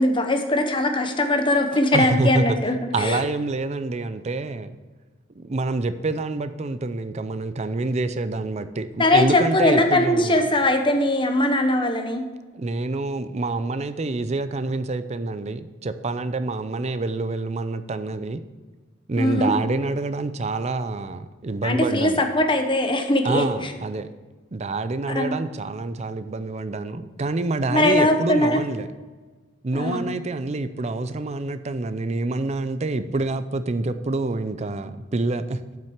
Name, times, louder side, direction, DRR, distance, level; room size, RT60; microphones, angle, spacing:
voice 1, 0.0-3.2 9.0-12.2 19.2-19.5 21.6-23.4 25.1-25.3 27.7-28.6 29.7-30.0, left 1 dB, 25° left, 5 dB, 1.0 m, -21 dB
voice 2, 1.7-2.6 2.9-4.8 5.4-10.5 12.5-18.4 19.1-22.2 23.2-24.1 24.5-28.9 29.6-35.6, right 3 dB, 35° right, 12 dB, 0.5 m, -27 dB
7.6 x 5.9 x 7.2 m, 1.3 s
head